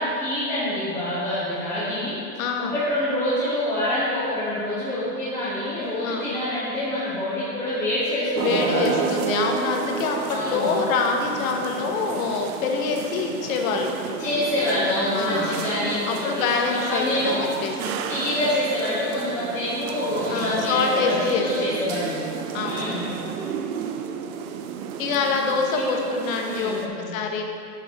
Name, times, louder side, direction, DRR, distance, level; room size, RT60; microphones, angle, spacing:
voice 1, 0.0-2.1 2.7-9.0 10.3-10.7 14.2-17.4 18.1-22.2 22.6-23.1 25.9-26.1 26.5-27.1, left 1 dB, 5° left, -13 dB, 1.2 m, -26 dB
voice 2, 2.4-2.8 6.0-6.4 8.4-13.9 15.1-17.7 20.3-21.6 22.5-23.1 25.0-26.7 27.1-27.4, left 4 dB, 55° left, 2 dB, 1.1 m, -25 dB
sound 1, 8.3-26.9, right 7 dB, 60° right, 0.6 m, -32 dB
7.4 x 5.7 x 4.1 m, 2.5 s
supercardioid pair, 155°, 49 cm